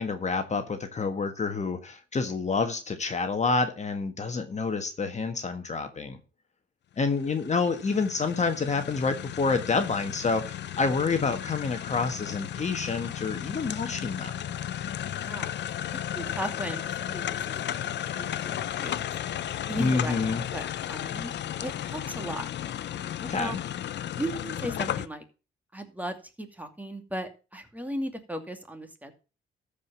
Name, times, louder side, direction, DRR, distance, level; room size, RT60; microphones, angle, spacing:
voice 1, 0.0-6.2 7.0-14.3 19.8-20.4 23.2-23.6, left 4 dB, 35° left, 1.5 m, -28 dB
sound 1, 7.1-25.1, left 11 dB, 60° left, 0.7 m, -34 dB
voice 2, 15.1-15.5 16.1-19.1 19.7-20.2 20.5-21.3 21.6-22.5 23.3-23.6 24.1-25.2 25.7-29.1, right 1 dB, 10° right, 2.4 m, -37 dB
13.5 x 5.1 x 7.0 m
cardioid pair, 90°, 20 cm